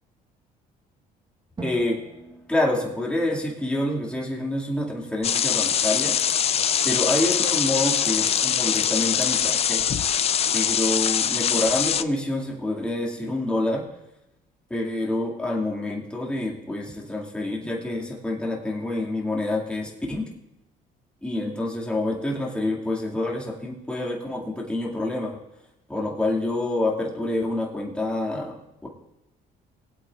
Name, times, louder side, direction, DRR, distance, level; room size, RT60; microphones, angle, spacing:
voice 1, 1.6-2.0 2.5-6.2 6.8-9.8 10.5-13.8 14.7-20.3 21.2-25.4 25.9-28.9, left 1 dB, 5° left, -3 dB, 2.2 m, -27 dB
Drum, 1.6-4.1, right 3 dB, 25° right, 1.2 m, -42 dB
sound 1, 5.2-12.0, left 8 dB, 35° left, 0.4 m, -23 dB
22.0 x 8.2 x 2.4 m, 0.88 s
cardioid pair, 110°, 17 cm